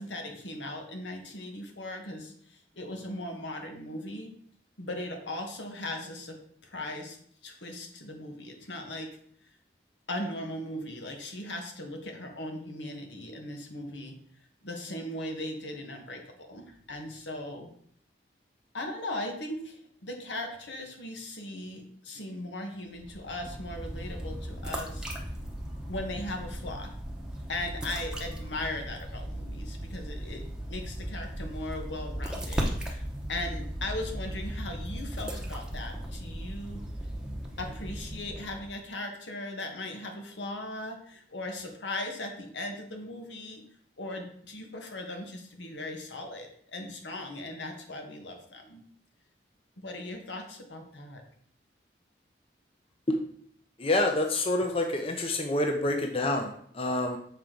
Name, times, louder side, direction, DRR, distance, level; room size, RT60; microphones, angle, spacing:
voice 1, 0.0-4.3 4.8-6.4 6.6-7.2 7.4-9.1 10.1-14.2 14.6-17.7 18.7-25.1 25.9-26.9 27.5-30.4 30.7-33.0 33.3-36.8 37.6-43.6 44.0-48.8 49.8-51.2, left 1 dB, 85° left, 3 dB, 1.3 m, -38 dB
sound 1, 22.9-38.8, equal, 5° right, 0.8 m, -37 dB
voice 2, 53.8-57.2, left 1 dB, 30° left, 4 dB, 0.6 m, -27 dB
7.3 x 4.6 x 3.8 m, 0.63 s
head